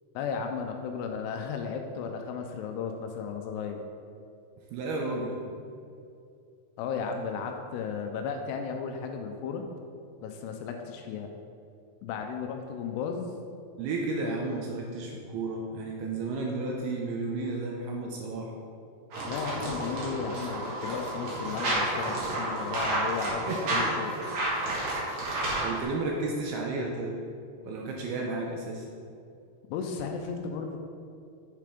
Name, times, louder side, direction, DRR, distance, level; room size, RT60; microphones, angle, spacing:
voice 1, 0.2-3.8 6.8-9.6 10.2-11.3 12.0-13.3 19.2-24.1 29.7-30.8, left 6 dB, 80° left, 4 dB, 2.5 m, -34 dB
voice 2, 4.7-5.4 13.8-18.5 23.5-24.0 25.3-27.2 27.6-28.9, right 3 dB, 80° right, 0 dB, 2.4 m, -33 dB
sound 1, 19.1-25.8, right 2 dB, 50° right, 2.8 m, -31 dB
7.5 x 6.7 x 5.0 m, 2.5 s
omnidirectional pair, 5.1 m